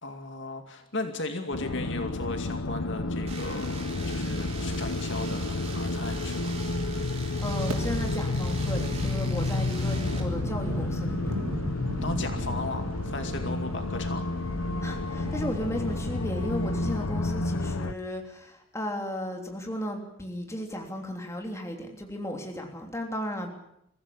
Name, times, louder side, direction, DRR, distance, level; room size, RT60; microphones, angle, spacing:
voice 1, 0.0-3.8 4.1-6.6 12.0-14.2, left 2 dB, 55° left, 5 dB, 2.4 m, -36 dB
sound 1, 1.5-17.9, left 2 dB, 85° left, 0.9 m, -30 dB
sound 2, 3.3-10.2, right 3 dB, 30° right, 4.2 m, -42 dB
voice 2, 7.4-11.3 14.8-23.5, equal, 15° left, 2 dB, 3.3 m, -35 dB
sound 3, 7.7-17.1, right 1 dB, 80° right, 2.9 m, -39 dB
23.5 x 15.5 x 9.8 m, 0.80 s
head